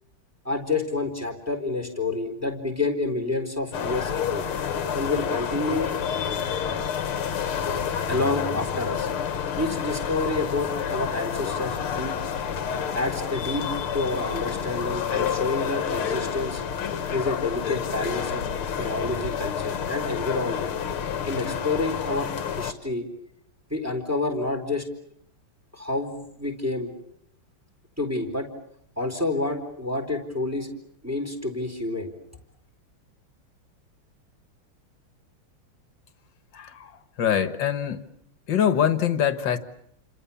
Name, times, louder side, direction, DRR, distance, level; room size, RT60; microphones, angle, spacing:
voice 1, 0.4-4.5 4.9-5.9 7.7-7.8 8.1-9.1 9.6-12.2 12.9-16.6 17.1-18.5 18.8-20.7 21.2-23.1 23.7-24.9 25.7-26.9 28.0-28.5 29.0-30.7 31.0-32.1, left 2 dB, 5° right, 6 dB, 4.0 m, -28 dB
sound 1, 3.7-22.7, left 7 dB, 85° left, 2.2 m, -29 dB
voice 2, 36.5-38.0 38.5-39.6, left 9 dB, 60° left, 11 dB, 2.1 m, -24 dB
29.0 x 26.5 x 7.2 m, 0.71 s
omnidirectional pair, 2.3 m